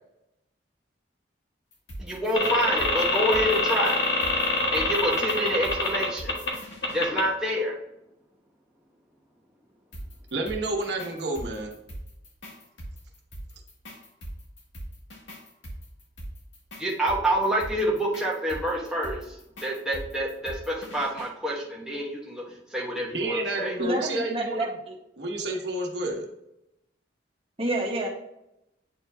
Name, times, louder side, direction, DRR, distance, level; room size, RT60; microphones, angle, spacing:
sound 1, 1.7-7.0 9.9-21.3, equal, 80° left, 2.0 m, -41 dB
voice 1, 2.0-4.0 4.7-6.3 6.9-7.8 16.8-19.2 19.6-22.4 22.7-23.7, equal, 5° right, -4 dB, 1.0 m, -27 dB
sound 2, 2.3-6.5 6.8-7.2, left 2 dB, 60° left, 1.6 m, -25 dB
voice 2, 10.3-11.7 23.1-24.7 25.2-26.3, right 2 dB, 65° right, 1 dB, 1.1 m, -29 dB
voice 3, 23.8-24.9 25.3-25.4 27.6-28.1, right 1 dB, 30° right, -1 dB, 1.3 m, -29 dB
8.5 x 4.5 x 2.7 m, 0.84 s
head